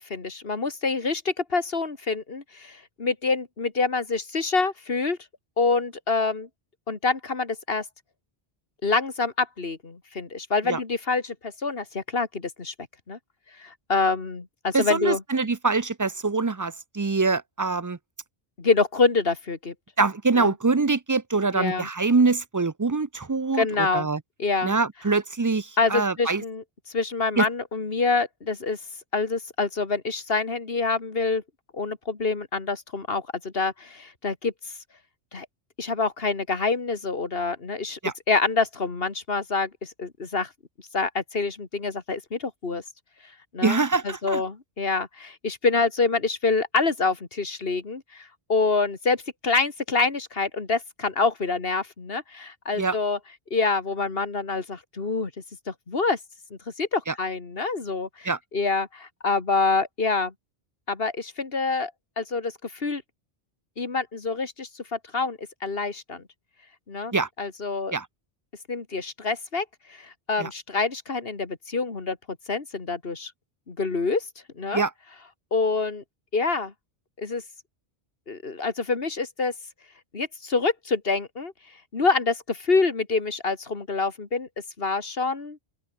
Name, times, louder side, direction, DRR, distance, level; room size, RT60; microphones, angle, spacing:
voice 1, 0.0-5.2 5.6-6.5 6.9-7.8 8.8-12.7 13.1-13.2 13.6-15.2 18.6-19.7 20.4-20.5 21.5-21.9 23.6-24.1 24.4-24.7 25.8-26.6 26.9-28.8 29.1-31.4 31.7-34.5 35.3-35.5 35.8-38.0 38.3-40.5 40.9-42.8 43.5-43.8 44.0-53.2 53.5-55.3 55.7-56.2 56.5-60.3 60.9-63.0 63.8-66.2 66.9-67.9 68.7-72.2 72.5-73.3 73.7-74.2 74.6-74.8 75.5-76.0 76.3-76.7 77.2-77.4 78.3-79.5 80.1-81.5 81.9-84.5 84.8-85.6, left 4 dB, 70° left, 2.4 m, -26 dB
voice 2, 14.7-18.0 20.0-24.2 24.6-26.4 27.4-27.5 38.0-38.1 43.6-44.4 52.8-53.0 57.1-57.2 58.2-58.4 67.1-67.3 67.9-68.1 70.4-70.5 74.7-74.9, right 4 dB, 25° right, 0.5 m, -24 dB
open air
omnidirectional pair, 1.0 m